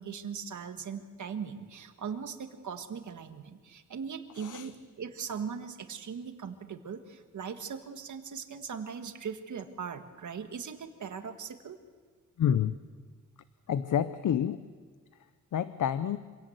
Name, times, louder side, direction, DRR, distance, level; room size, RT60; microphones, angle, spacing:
voice 1, 0.0-11.8, right 6 dB, 70° right, 7 dB, 1.6 m, -39 dB
voice 2, 4.3-4.7 12.4-12.8 13.7-14.6 15.5-16.2, left 9 dB, 75° left, 13 dB, 0.7 m, -28 dB
26.0 x 17.5 x 8.0 m, 1.5 s
wide cardioid pair, 135°, 31 cm